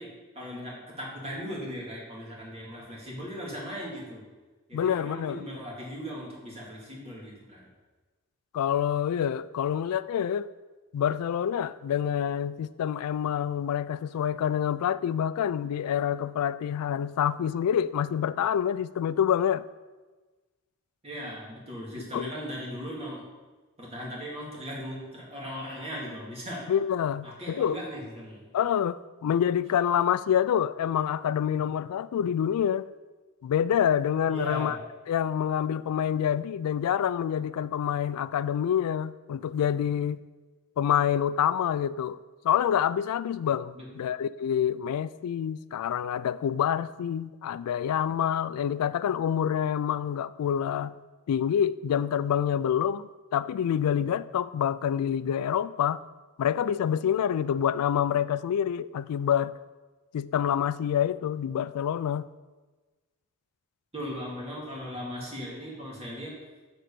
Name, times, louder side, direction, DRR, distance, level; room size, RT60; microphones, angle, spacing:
voice 1, 0.0-4.2 4.7-7.7 21.0-23.2 23.8-26.7 27.2-28.4 34.3-34.8 43.7-43.9 63.9-66.3, equal, 30° right, 2.1 m, -38 dB
voice 2, 4.7-5.4 8.5-10.5 10.9-19.6 22.1-22.3 26.7-27.8 28.5-32.9 33.4-34.8 35.1-40.2 40.8-42.2 42.4-50.9 51.3-56.0 56.4-59.5 60.1-62.3, left 9 dB, 80° left, 0.3 m, -27 dB
7.6 x 3.9 x 6.7 m
head